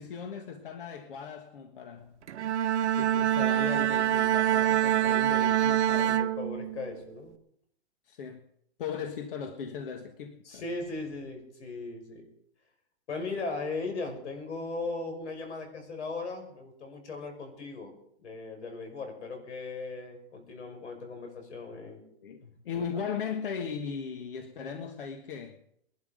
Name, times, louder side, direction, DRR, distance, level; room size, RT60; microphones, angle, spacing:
voice 1, 0.0-2.2 3.0-6.2 8.0-8.4 8.8-10.6 22.2-25.6, left 6 dB, 55° left, 1.5 m, -38 dB
Bowed string instrument, 2.3-7.0, right 11 dB, 85° right, 1.0 m, -25 dB
voice 2, 5.0-5.5 5.9-7.3 10.4-12.3 13.1-17.9 18.2-22.0 22.4-22.8, left 3 dB, 85° left, 5.9 m, -38 dB
21.0 x 12.0 x 5.2 m
hypercardioid pair, 170°, 34 cm